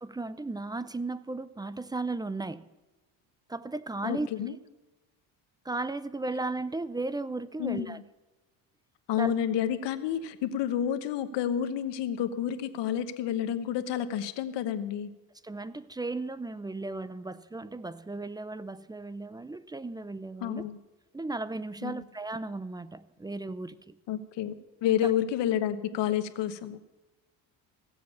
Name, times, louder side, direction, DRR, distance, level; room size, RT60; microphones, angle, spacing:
voice 1, 0.0-2.7 3.5-4.3 5.6-8.0 9.2-9.3 15.4-20.6 21.1-24.0 24.9-25.1, right 2 dB, 10° right, 17 dB, 0.4 m, -35 dB
voice 2, 4.0-4.5 7.6-8.0 9.1-15.1 20.4-20.8 21.8-22.0 24.1-24.5 24.8-26.8, left 10 dB, 70° left, 11 dB, 1.1 m, -30 dB
15.5 x 7.8 x 6.9 m, 1.1 s
cardioid pair, 95°, 44 cm